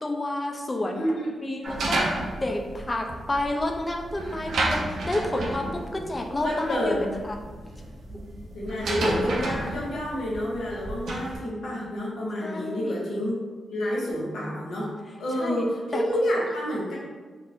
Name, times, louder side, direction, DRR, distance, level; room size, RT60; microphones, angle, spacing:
voice 1, 0.0-1.0 1.4-7.4 12.4-13.0 15.4-15.7 15.9-16.0, left 1 dB, 20° left, 2 dB, 0.4 m, -30 dB
voice 2, 0.9-1.5 5.9-6.1 6.4-7.1 8.1-8.3 8.5-13.4 13.7-14.9 15.2-17.1, equal, 85° left, -5 dB, 0.9 m, -29 dB
sound 1, 1.6-11.4, right 2 dB, 75° right, 0.5 m, -31 dB
2.6 x 2.5 x 3.4 m, 1.4 s
wide cardioid pair, 130°, 0 cm